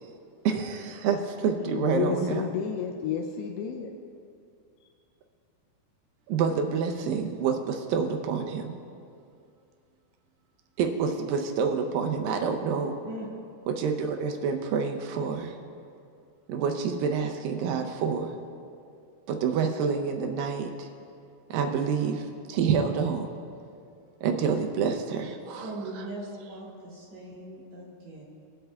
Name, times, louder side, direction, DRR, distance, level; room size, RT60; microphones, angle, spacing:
voice 1, 0.4-2.4 6.3-8.7 10.8-13.0 13.7-15.6 16.5-18.3 19.3-20.9 21.5-23.3 24.2-25.7, right 6 dB, 80° right, 4 dB, 2.2 m, -28 dB
voice 2, 1.7-3.9, left 8 dB, 85° left, 3 dB, 2.5 m, -31 dB
voice 3, 25.6-28.2, right 1 dB, 55° right, -5 dB, 2.7 m, -40 dB
22.0 x 7.7 x 2.3 m, 2.4 s
omnidirectional pair, 4.5 m